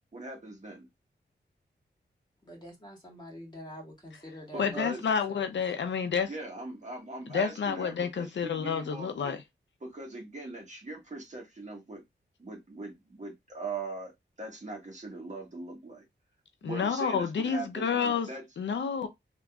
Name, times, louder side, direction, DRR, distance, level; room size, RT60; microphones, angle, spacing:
voice 1, 0.1-0.9 4.5-5.0 6.2-9.4 9.8-12.0 12.4-14.1 14.4-16.0 16.6-18.5, right 2 dB, 40° right, 1.5 m, -41 dB
voice 2, 2.4-5.4, right 1 dB, 25° left, 2.0 m, -45 dB
voice 3, 4.6-6.3 7.3-9.4 16.6-18.3 18.6-19.1, left 6 dB, 75° left, 0.5 m, -29 dB
3.5 x 2.9 x 2.3 m
wide cardioid pair, 110°, 19 cm